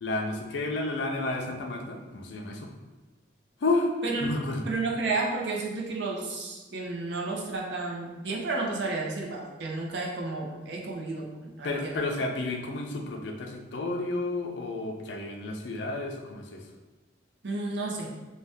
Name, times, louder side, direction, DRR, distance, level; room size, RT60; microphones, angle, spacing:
voice 1, 0.0-2.7 3.6-3.9 4.2-4.6 11.6-16.6, left 2 dB, 70° left, 2 dB, 0.4 m, -31 dB
voice 2, 4.7-12.1 17.4-18.1, right 3 dB, 65° right, -1 dB, 0.5 m, -32 dB
2.6 x 2.2 x 3.4 m, 1.2 s
head